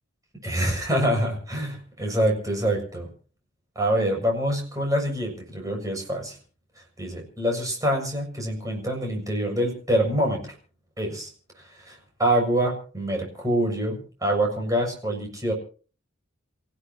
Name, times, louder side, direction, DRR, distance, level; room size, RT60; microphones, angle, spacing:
voice 1, 0.4-3.1 3.8-6.4 7.0-10.5 11.0-11.3 11.7-15.5, right 1 dB, 20° right, 1 dB, 6.9 m, -25 dB
29.0 x 16.0 x 3.0 m, 0.40 s
head